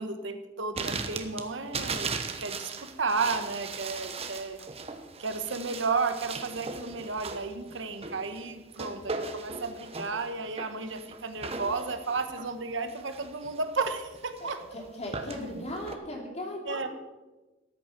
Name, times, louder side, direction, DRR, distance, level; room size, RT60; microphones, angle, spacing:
voice 1, 0.0-2.7 3.0-4.6 5.2-14.6 16.7-16.9, right 4 dB, 75° right, 8 dB, 1.2 m, -33 dB
sound 1, 0.8-16.0, right 4 dB, 30° right, 1.0 m, -38 dB
voice 2, 14.4-16.9, left 1 dB, 35° left, 1 dB, 3.0 m, -37 dB
13.5 x 9.5 x 6.0 m, 1.1 s
head